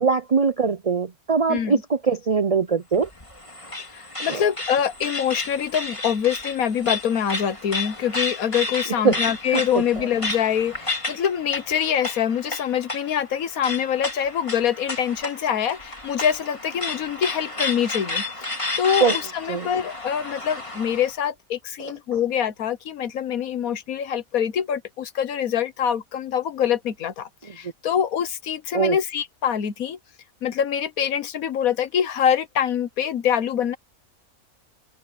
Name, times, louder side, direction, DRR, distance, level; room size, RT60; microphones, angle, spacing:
voice 1, 0.0-3.1 4.2-4.4 9.0-9.2 9.5-10.0 19.0-19.1 19.5-19.7 28.7-29.0, right 5 dB, 70° right, 0.3 m, -22 dB
voice 2, 1.5-1.8 3.9-30.0 30.4-33.8, left 8 dB, 70° left, 1.4 m, -25 dB
sound 1, 2.9-21.1, left 3 dB, 20° left, 3.1 m, -32 dB
open air
omnidirectional pair, 1.6 m